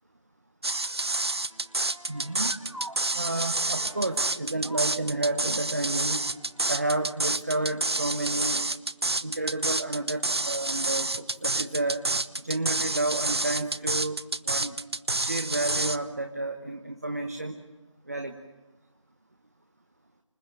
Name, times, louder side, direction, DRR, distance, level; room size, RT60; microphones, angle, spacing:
sound 1, 0.6-16.0, right 2 dB, 55° right, 0.9 m, -28 dB
sound 2, 1.5-6.9, right 1 dB, 85° right, 2.8 m, -47 dB
voice 1, 2.1-2.5 3.1-6.3 6.7-8.7 9.2-12.0 12.4-14.8 15.1-17.6 18.1-18.3, right 2 dB, 30° right, 5 dB, 1.1 m, -31 dB
27.0 x 18.5 x 9.0 m, 1.1 s
figure-of-eight pair, 170°, 16 cm